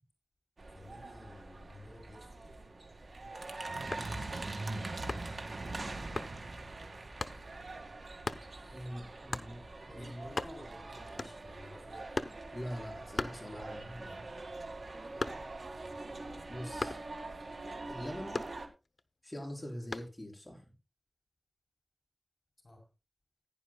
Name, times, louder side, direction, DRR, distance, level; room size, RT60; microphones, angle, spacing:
sound 1, 0.6-18.7, right 2 dB, 90° right, 2.0 m, -43 dB
voice 1, 0.7-2.5 9.9-12.1 22.6-22.8, left 1 dB, 55° left, 2 dB, 4.3 m, -53 dB
sound 2, 3.9-4.2 5.1-5.4 6.2-6.4 7.2-7.4 8.2-8.5 9.3-9.6 10.0-10.1 10.2-10.8 11.2-11.6 12.1-12.5 13.2-13.9 14.3-15.7 16.8-17.1 18.3-19.0 19.9-20.2, left 3 dB, 75° left, 0.9 m, -38 dB
voice 2, 4.0-4.3 8.7-10.2 12.5-14.3 16.5-17.0 17.9-18.4 19.2-20.6, equal, 20° left, 0 dB, 4.9 m, -43 dB
16.0 x 10.5 x 2.3 m, 0.28 s
wide cardioid pair, 55°, 0 cm